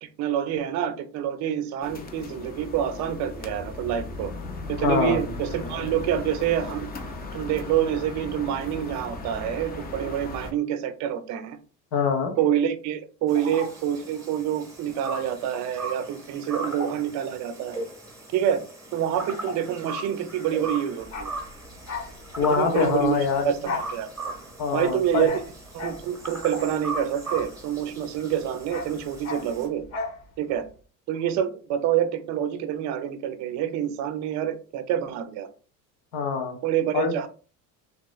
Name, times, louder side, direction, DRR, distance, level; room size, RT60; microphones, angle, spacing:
voice 1, 0.0-4.3 4.7-11.6 12.4-17.9 18.3-18.6 18.9-21.3 22.5-23.2 23.4-24.3 24.7-25.4 25.7-29.8 30.4-30.6 31.1-35.5 36.6-37.3, right 10 dB, 45° right, 10 dB, 0.4 m, -27 dB
sound 1, 1.8-10.5, left 3 dB, 25° left, 0.4 m, -37 dB
voice 2, 4.8-5.2 11.9-12.3 22.4-23.5 24.6-25.3 36.1-36.6 36.9-37.1, left 5 dB, 90° left, 4 dB, 1.0 m, -24 dB
sound 2, 13.3-29.7, right 2 dB, 10° right, 1.0 m, -38 dB
Bark, 21.0-28.0 28.3-30.2 30.5-30.7, left 3 dB, 40° left, 0.8 m, -36 dB
3.0 x 2.9 x 2.3 m, 0.38 s
cardioid pair, 130°, 40 cm